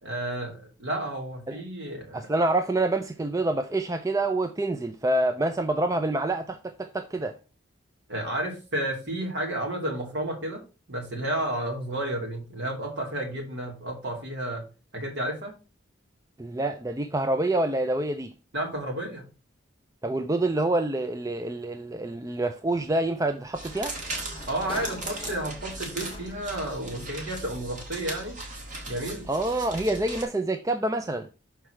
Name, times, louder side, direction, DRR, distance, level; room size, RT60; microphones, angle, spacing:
voice 1, 0.0-2.2 8.1-10.6 10.9-14.6 14.9-15.5 18.5-19.2 24.5-28.4 28.9-29.2, right 1 dB, 55° right, 2.6 m, -31 dB
voice 2, 2.1-7.4 16.4-18.3 20.0-23.9 29.3-31.3, right 2 dB, 15° right, 0.3 m, -27 dB
Sliding door, 22.7-26.6, left 2 dB, 25° left, 0.8 m, -43 dB
sound 1, 23.5-30.2, right 2 dB, 40° right, 1.8 m, -38 dB
6.3 x 4.6 x 5.6 m
head